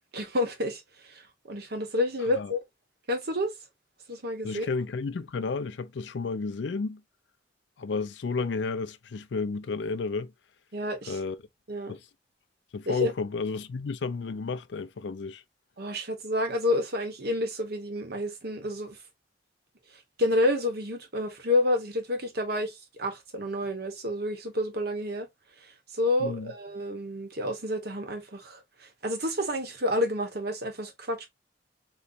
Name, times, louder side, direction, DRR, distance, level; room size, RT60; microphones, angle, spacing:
voice 1, 0.1-2.6 3.1-3.5 4.1-4.7 10.7-11.2 11.7-12.0 12.9-13.1 15.8-19.0 20.2-25.3 25.6-31.3, left 1 dB, 60° right, 1.2 m, -29 dB
voice 2, 4.4-7.0 7.8-10.3 11.1-11.4 11.9-12.0 12.7-15.4 26.2-26.5, left 4 dB, 75° left, 0.5 m, -32 dB
4.0 x 3.1 x 2.4 m
head